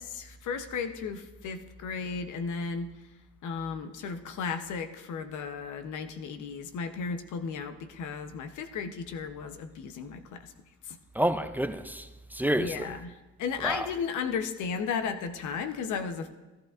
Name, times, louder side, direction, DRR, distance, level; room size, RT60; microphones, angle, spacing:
voice 1, 0.0-2.9 3.4-10.5 10.9-11.0 12.4-13.1 13.4-16.3, left 5 dB, 75° left, 0.8 m, -34 dB
voice 2, 11.1-12.9 13.6-13.9, right 1 dB, 5° right, 0.4 m, -29 dB
14.5 x 11.5 x 2.5 m
cardioid pair, 90°, 30 cm